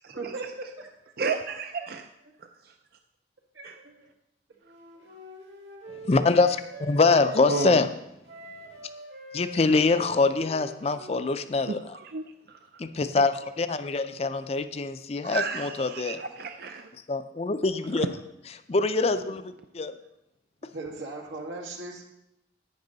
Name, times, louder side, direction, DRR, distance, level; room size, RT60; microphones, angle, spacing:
voice 1, 0.1-0.9 3.5-4.1 20.7-22.1, right 3 dB, 90° right, 1 dB, 2.0 m, -38 dB
voice 2, 1.2-2.1 2.4-2.7 3.6-3.7 7.5-7.8 11.7-12.8 15.2-16.9 17.9-18.1, right 4 dB, 50° right, 6 dB, 0.4 m, -32 dB
Wind instrument woodwind instrument, 4.6-7.8 8.3-11.6, right 2 dB, 70° right, 2.3 m, -44 dB
voice 3, 5.9-7.9 9.3-11.8 12.8-16.2 17.1-18.1 18.7-19.9, left 3 dB, 35° left, 11 dB, 0.4 m, -24 dB
11.0 x 8.9 x 4.0 m, 0.84 s
head